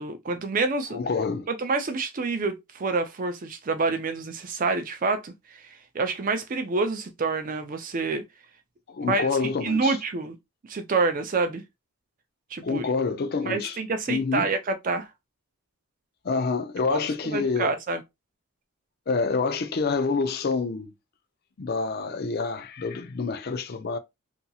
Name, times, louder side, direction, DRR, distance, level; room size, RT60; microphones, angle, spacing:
voice 1, 0.0-1.0 1.5-5.6 5.9-8.2 9.0-10.4 10.7-11.6 12.5-12.9 13.5-15.1 16.9-17.0 17.3-18.0, right 3 dB, 40° right, 0.4 m, -27 dB
voice 2, 0.9-1.5 8.9-10.0 12.6-13.8 14.1-14.5 16.2-17.7 19.1-20.9 21.6-24.0, left 4 dB, 45° left, 0.4 m, -27 dB
2.8 x 2.6 x 2.3 m
head